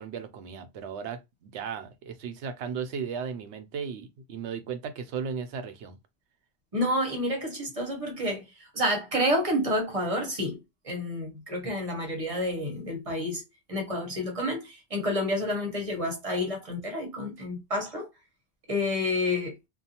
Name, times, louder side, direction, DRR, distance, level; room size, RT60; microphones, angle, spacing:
voice 1, 0.0-6.0, right 6 dB, 80° right, 0.9 m, -36 dB
voice 2, 6.7-10.6 10.8-13.4 13.7-18.1 18.7-19.6, left 1 dB, 35° right, 0.9 m, -29 dB
2.5 x 2.2 x 2.8 m
omnidirectional pair, 1.1 m